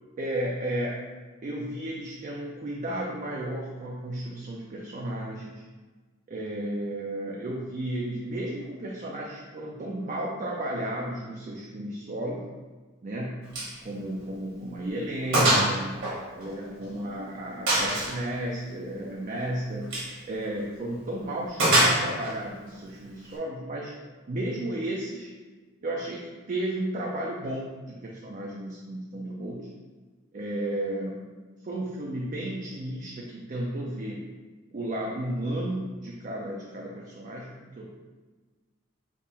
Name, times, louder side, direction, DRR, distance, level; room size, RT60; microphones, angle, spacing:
voice 1, 0.2-1.0 1.4-5.6 6.3-12.5 13.0-13.4 13.8-15.9 16.4-19.9 20.3-23.9 24.3-25.3 25.8-29.7 30.3-31.3 31.6-34.3 34.7-37.9, right 1 dB, 40° right, -3 dB, 0.4 m, -33 dB
Gunshot gunfire, 13.5-13.8 14.1-14.2 14.7-14.8 15.3-15.7 16.0-17.0 17.7-18.2 19.8-20.1 21.6-22.3, right 1 dB, 70° right, 1.3 m, -23 dB
3.6 x 2.5 x 4.1 m, 1.3 s
head